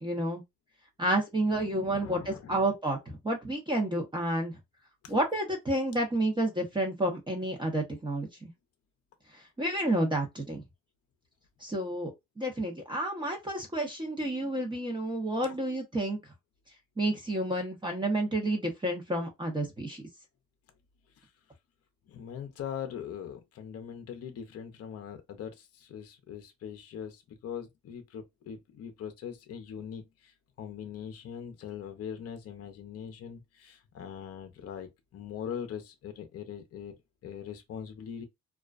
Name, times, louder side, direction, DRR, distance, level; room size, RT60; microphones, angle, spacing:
voice 1, 0.0-0.4 1.0-4.6 5.1-8.5 9.6-10.6 11.6-12.1 12.4-16.2 17.0-20.0, right 1 dB, 15° right, 0.7 m, -30 dB
voice 2, 1.5-2.7 5.0-5.1 15.4-15.6 21.2-21.3 22.1-37.0 37.2-38.3, left 8 dB, 55° left, 0.6 m, -41 dB
2.3 x 2.2 x 2.4 m
cardioid pair, 90°, 30 cm